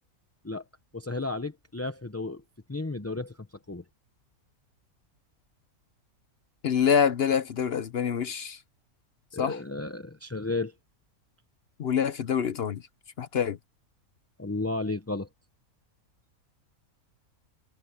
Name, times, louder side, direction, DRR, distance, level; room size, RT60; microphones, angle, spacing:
voice 1, 0.9-2.4 2.7-3.8 9.3-10.7 14.4-15.3, left 2 dB, 15° left, 0.6 m, -33 dB
voice 2, 6.6-8.6 9.4-9.6 11.8-12.8 13.2-13.6, left 7 dB, 50° left, 0.8 m, -26 dB
omnidirectional pair, 1.6 m